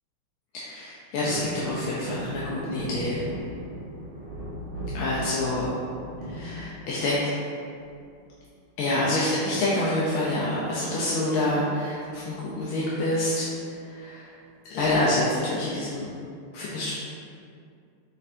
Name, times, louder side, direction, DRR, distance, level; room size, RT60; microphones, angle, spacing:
voice 1, 0.5-3.2 4.9-5.7 6.2-7.2 8.8-14.3 14.7-16.1 16.5-16.9, left 1 dB, 85° left, -7 dB, 1.5 m, -27 dB
sound 1, 1.2-7.4 7.8-8.4 9.7-10.1 10.4-10.5 10.7-11.0 11.9-12.8 13.3-13.4, right 1 dB, 70° right, 2.0 m, -37 dB
4.4 x 4.2 x 2.6 m, 2.3 s
omnidirectional pair, 2.4 m